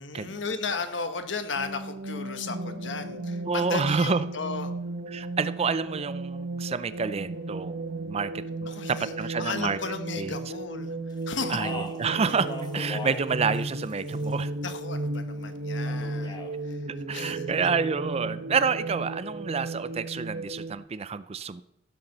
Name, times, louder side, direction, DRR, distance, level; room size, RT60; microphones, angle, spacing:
voice 1, 0.0-4.7 8.6-9.1 9.4-10.9 11.3-11.6 14.6-16.8 17.1-17.5, left 4 dB, 70° left, 9 dB, 1.2 m, -35 dB
sound 1, 1.6-20.7, right 2 dB, 85° right, 1.2 m, -34 dB
voice 2, 3.5-4.2 5.1-9.8 10.2-10.4 11.5-14.5 17.1-21.6, right 5 dB, 35° right, 15 dB, 0.4 m, -29 dB
Speech, 11.5-13.3 13.5-14.4 15.9-16.5, left 2 dB, 25° left, 1.7 m, -39 dB
14.5 x 6.9 x 6.7 m, 0.79 s
head